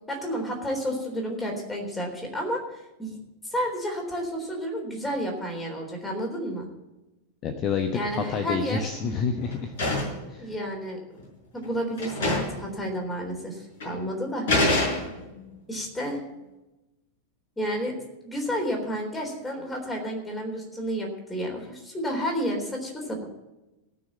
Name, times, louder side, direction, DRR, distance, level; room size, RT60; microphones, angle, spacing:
voice 1, 0.1-3.2 3.4-6.7 7.9-8.9 10.4-11.2 11.5-14.5 15.7-16.2 17.6-18.0 18.2-23.2, equal, 10° left, 1 dB, 3.7 m, -31 dB
voice 2, 7.4-9.7 10.3-10.5, left 5 dB, 35° left, 7 dB, 1.0 m, -28 dB
sound 1, 8.0-8.6 8.9-10.3 11.2-11.3 11.6-11.7 12.0-12.7 12.9-13.0 13.8-13.9 14.5-15.4, left 2 dB, 55° left, 6.0 m, -26 dB
17.5 x 6.3 x 7.3 m, 1.0 s
figure-of-eight pair, 90°, 0 cm